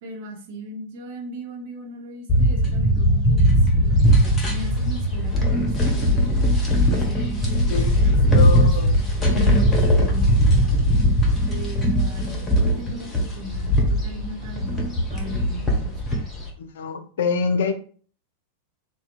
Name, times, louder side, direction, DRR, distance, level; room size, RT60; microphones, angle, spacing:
voice 1, 0.0-4.1 4.4-6.5 6.9-8.7 9.3-10.5 11.5-16.0, equal, 50° right, 0 dB, 0.7 m, -37 dB
sound 1, 2.3-16.5, equal, 15° left, 0.7 m, -19 dB
voice 2, 5.7-6.0 7.7-8.9 16.6-17.7, left 5 dB, 60° left, 7 dB, 0.3 m, -26 dB
2.6 x 2.0 x 2.4 m, 0.43 s
figure-of-eight pair, 90°, 0 cm